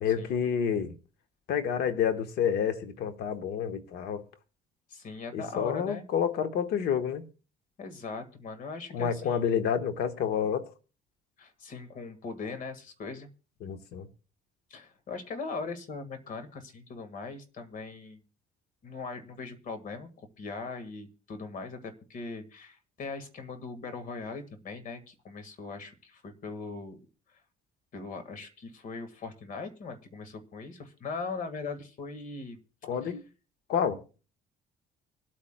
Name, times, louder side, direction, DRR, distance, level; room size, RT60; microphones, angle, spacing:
voice 1, 0.0-1.0 1.5-4.2 5.3-7.2 8.9-10.7 13.6-14.1 32.8-33.2 33.7-34.0, left 8 dB, 75° left, 1.2 m, -29 dB
voice 2, 4.9-6.0 7.8-9.4 11.4-13.3 14.7-18.2 18.8-27.0 27.3-27.4 27.9-32.6 33.0-33.1, left 4 dB, 50° left, 1.7 m, -40 dB
25.0 x 8.7 x 2.2 m
cardioid pair, 110°, 17 cm